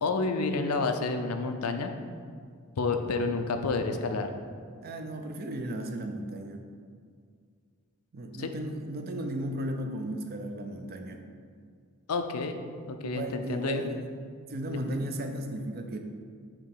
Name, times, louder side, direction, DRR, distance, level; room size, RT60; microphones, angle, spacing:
voice 1, 0.0-1.9 2.8-4.4 8.4-8.5 12.1-12.6 12.8-13.8, left 3 dB, 90° left, 6 dB, 0.5 m, -29 dB
voice 2, 4.8-6.6 8.1-11.2 13.0-14.0 14.5-16.0, right 1 dB, 45° right, 5 dB, 0.6 m, -35 dB
6.8 x 2.9 x 5.5 m, 2.1 s
head